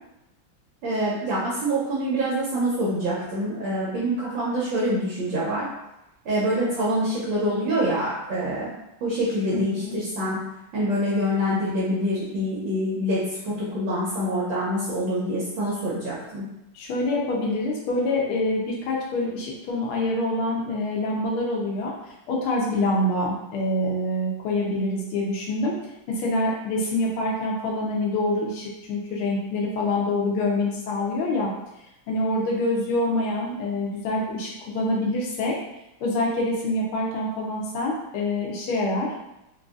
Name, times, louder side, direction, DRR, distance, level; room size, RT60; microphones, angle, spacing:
voice 1, 0.8-5.7 6.2-8.7 9.0-10.4 10.7-16.4, equal, 70° right, -7 dB, 1.4 m, -25 dB
voice 2, 9.5-10.0 16.7-21.9 22.3-25.7 26.1-31.5 32.1-35.5 36.0-39.1, left 1 dB, 85° left, -2 dB, 1.6 m, -26 dB
3.9 x 2.6 x 2.4 m, 0.91 s
omnidirectional pair, 2.3 m